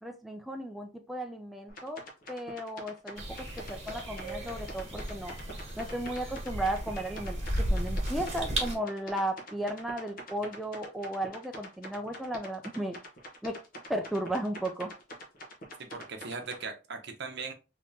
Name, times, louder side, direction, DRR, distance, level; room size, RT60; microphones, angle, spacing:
voice 1, 0.0-2.0 2.3-5.3 5.8-7.4 7.7-13.0 13.4-13.6 13.9-14.9, right 1 dB, ahead, 0.3 m, -35 dB
sound 1, 1.7-16.6, equal, 45° left, 0.9 m, -45 dB
sound 2, 3.1-8.7, right 1 dB, 35° right, 1.4 m, -34 dB
voice 2, 15.8-17.5, right 4 dB, 60° right, 0.7 m, -39 dB
3.5 x 2.8 x 2.7 m
head